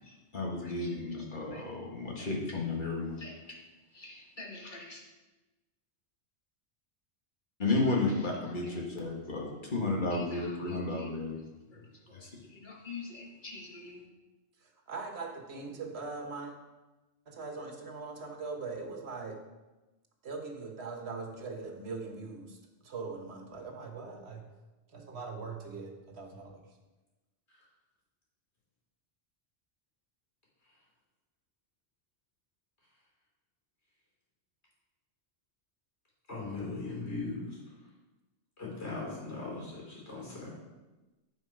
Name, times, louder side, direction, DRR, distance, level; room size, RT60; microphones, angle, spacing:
voice 1, 0.1-3.6 3.9-5.0 7.6-11.4 11.7-11.8 12.1-14.1, left 3 dB, 45° left, -1 dB, 1.7 m, -34 dB
voice 2, 14.6-16.5 17.3-19.4 20.2-24.4 24.9-26.6, right 4 dB, 70° right, 3 dB, 1.4 m, -41 dB
voice 3, 36.3-37.6 38.6-40.5, left 3 dB, 75° left, -4 dB, 3.3 m, -39 dB
9.5 x 5.3 x 5.0 m, 1.1 s
omnidirectional pair, 1.1 m